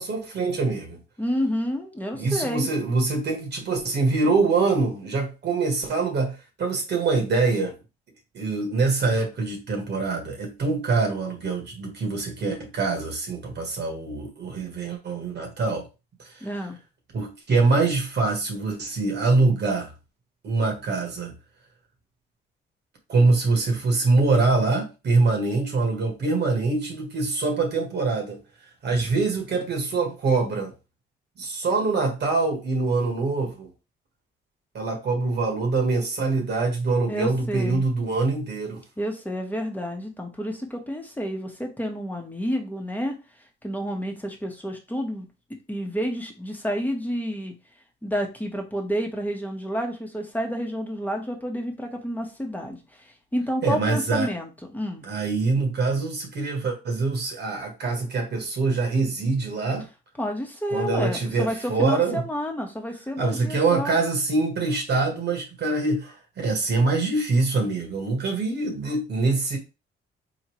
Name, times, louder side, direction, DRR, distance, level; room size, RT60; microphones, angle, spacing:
voice 1, 0.0-1.0 2.1-7.7 8.3-15.9 16.2-16.3 17.1-19.9 20.4-21.3 23.1-28.4 28.8-30.7 31.4-33.7 34.7-38.8 53.6-54.3 55.0-59.8 60.7-62.2 63.2-69.6, right 3 dB, 55° right, 1.5 m, -24 dB
voice 2, 1.2-2.7 16.4-16.8 37.1-37.8 39.0-43.2 43.6-45.3 45.7-47.5 48.0-55.0 60.2-63.9, equal, 10° left, 1.3 m, -30 dB
4.6 x 3.2 x 3.1 m
cardioid pair, 90°, 20 cm